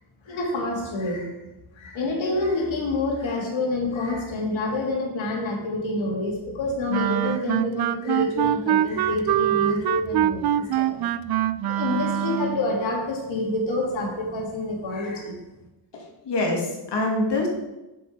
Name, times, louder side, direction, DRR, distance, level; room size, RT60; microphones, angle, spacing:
voice 1, 0.2-1.4 1.7-11.0 11.6-15.4, left 2 dB, 80° left, -1 dB, 2.7 m, -27 dB
Wind instrument woodwind instrument, 6.9-12.6, right 12 dB, 55° right, 0.5 m, -24 dB
voice 2, 15.9-17.5, left 2 dB, 65° left, -1 dB, 2.4 m, -25 dB
7.2 x 6.9 x 5.3 m, 0.99 s
cardioid pair, 100°, 46 cm